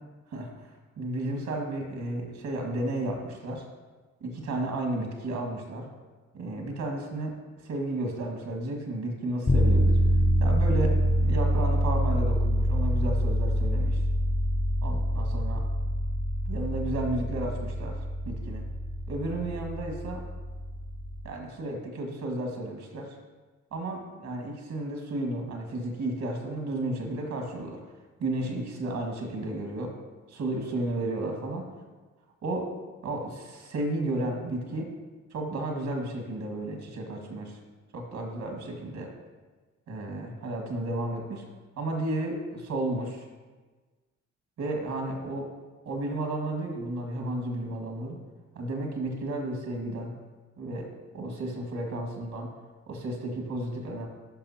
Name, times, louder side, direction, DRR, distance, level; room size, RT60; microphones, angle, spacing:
voice 1, 0.3-3.7 4.2-5.9 6.3-10.1 10.4-14.0 14.8-15.6 16.5-18.6 19.1-20.2 21.2-23.2 23.7-27.8 28.2-29.9 30.3-31.7 32.4-32.7 33.0-34.9 35.3-37.6 37.9-39.1 39.9-41.4 41.8-43.2 44.6-45.4 45.9-48.2 48.5-50.1 50.6-50.9 51.1-52.5 52.9-54.1, right 1 dB, 70° right, 2 dB, 1.9 m, -33 dB
sound 1, 9.5-21.3, equal, 15° left, 0.5 m, -26 dB
12.5 x 5.5 x 2.9 m, 1.3 s
cardioid pair, 90°, 30 cm